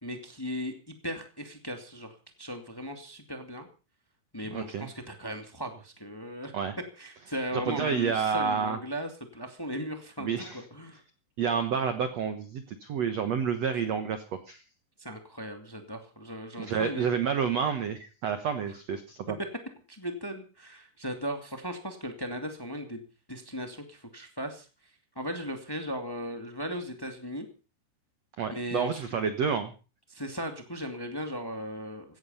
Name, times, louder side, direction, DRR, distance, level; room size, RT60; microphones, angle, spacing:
voice 1, 0.0-3.7 4.3-6.5 7.0-11.0 15.0-17.1 19.9-23.0 23.3-24.7 25.1-27.5 28.5-29.3 30.1-32.2, equal, 25° left, 5 dB, 0.4 m, -37 dB
voice 2, 4.5-4.9 6.5-6.7 7.5-8.8 10.2-10.6 11.4-14.6 16.6-19.4 28.4-29.7, right 6 dB, 90° right, 9 dB, 1.4 m, -29 dB
17.0 x 13.5 x 5.5 m, 0.36 s
omnidirectional pair, 5.0 m